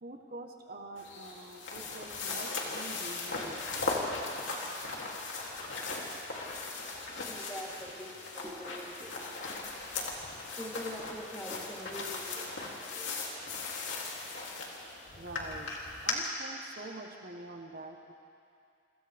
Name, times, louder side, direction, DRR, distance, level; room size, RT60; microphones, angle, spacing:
voice 1, 0.0-3.7 15.2-15.7 16.0-18.1, right 2 dB, 50° right, 2 dB, 1.3 m, -45 dB
sound 1, 1.0-16.1, left 3 dB, 80° left, 3.0 m, -38 dB
voice 2, 7.3-9.3 10.6-13.1 14.0-14.2, left 1 dB, 10° left, -5 dB, 3.4 m, -44 dB
28.5 x 25.5 x 3.6 m, 2.4 s
head